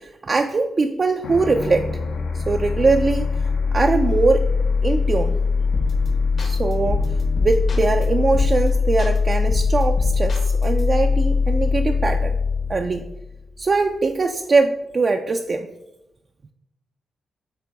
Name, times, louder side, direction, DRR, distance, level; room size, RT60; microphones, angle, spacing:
voice 1, 0.0-1.9 2.3-4.5 4.8-5.4 6.4-12.4 12.7-13.0 13.6-15.7, right 3 dB, 35° right, 5 dB, 0.3 m, -22 dB
sound 1, 1.2-14.0, left 4 dB, 90° left, 1.0 m, -22 dB
sound 2, 5.7-6.1 6.4-8.0 8.3-8.7 9.0-10.8, left 2 dB, 55° left, 1.1 m, -28 dB
8.1 x 3.0 x 4.6 m, 0.92 s
wide cardioid pair, 125°, 0 cm